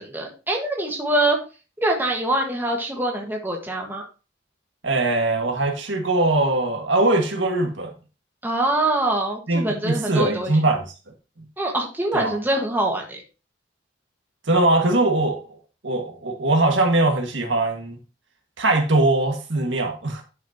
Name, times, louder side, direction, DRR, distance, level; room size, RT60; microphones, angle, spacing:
voice 1, 0.0-1.4 1.8-4.0 8.4-10.5 11.6-13.2, right 1 dB, 10° right, 1.5 m, -24 dB
voice 2, 4.8-7.9 9.5-10.8 11.4-11.5 12.1-12.3 14.5-15.4 15.8-18.0 18.6-20.2, right 2 dB, 70° right, 1.8 m, -21 dB
11.0 x 6.2 x 2.9 m
head